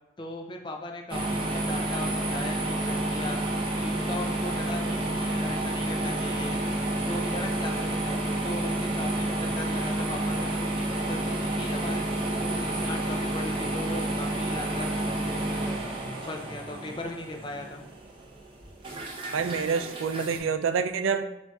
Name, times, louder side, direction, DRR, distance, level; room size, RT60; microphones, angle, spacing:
voice 1, 0.2-3.4 3.7-6.6 7.1-12.1 12.4-15.8 16.3-17.8, left 2 dB, 25° left, 2 dB, 0.4 m, -38 dB
sound 1, 1.1-20.4, right 1 dB, 25° right, 0.6 m, -30 dB
voice 2, 19.3-21.2, right 6 dB, 85° right, 9 dB, 0.4 m, -27 dB
5.9 x 2.6 x 2.3 m, 0.96 s
head